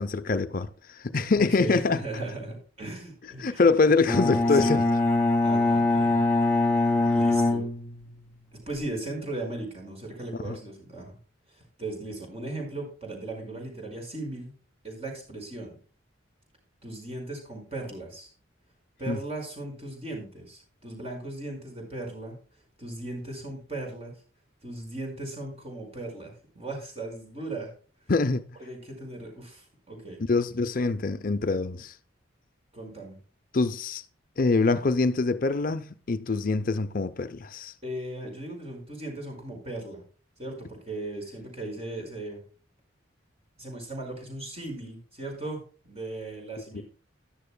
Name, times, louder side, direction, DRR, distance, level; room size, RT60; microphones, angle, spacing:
voice 1, 0.0-2.0 3.4-4.8 10.4-10.6 19.1-19.2 28.1-28.4 30.3-32.0 33.5-34.0 34.4-37.7 46.7-46.8, left 3 dB, 45° left, 0.6 m, -24 dB
voice 2, 1.3-3.6 4.5-4.7 5.4-6.2 7.1-7.7 8.5-11.1 11.5-14.5 14.8-15.8 16.8-18.3 19.0-22.4 22.8-24.2 24.6-27.7 28.6-30.2 32.7-33.2 37.8-40.0 40.4-42.4 43.6-46.8, right 2 dB, 30° right, 5.0 m, -37 dB
Bowed string instrument, 4.1-8.3, left 2 dB, 10° left, 2.1 m, -23 dB
13.5 x 11.0 x 2.2 m
head